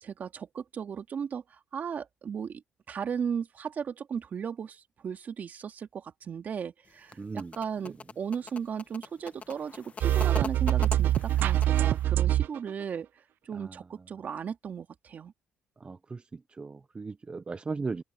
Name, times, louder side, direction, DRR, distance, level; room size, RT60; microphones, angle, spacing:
voice 1, 0.0-2.6 2.9-13.1 13.5-15.3, right 7 dB, 55° right, 2.3 m, -36 dB
sound 1, 6.9-12.0, left 5 dB, 40° left, 1.2 m, -43 dB
voice 2, 7.2-7.5 7.8-7.9 13.5-13.8 15.8-18.0, right 4 dB, 30° right, 0.6 m, -37 dB
sound 2, 10.0-12.7, right 13 dB, 70° right, 0.3 m, -24 dB
open air
cardioid pair, 75°, 3 cm